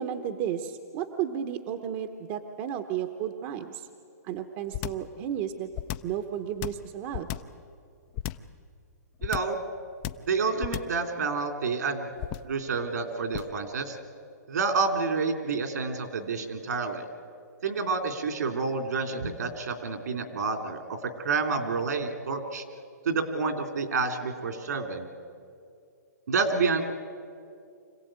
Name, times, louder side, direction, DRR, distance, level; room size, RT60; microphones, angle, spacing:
voice 1, 0.0-3.9 4.2-5.7 6.0-7.3, right 9 dB, 35° right, 7 dB, 1.0 m, -33 dB
sound 1, 4.7-5.1 5.7-6.2 6.6-7.6 8.2-8.5 9.2-9.6 10.0-10.3 10.6-11.0 12.2-12.6 13.3-13.6, left 13 dB, 30° left, 0.6 m, -33 dB
voice 2, 9.2-9.6 10.2-12.1 12.4-14.0 14.5-17.1 17.6-20.8 21.2-22.6 23.0-25.1 26.3-26.9, right 4 dB, 75° right, 6 dB, 3.1 m, -29 dB
25.5 x 16.5 x 8.9 m, 2.4 s
hypercardioid pair, 145°, 9 cm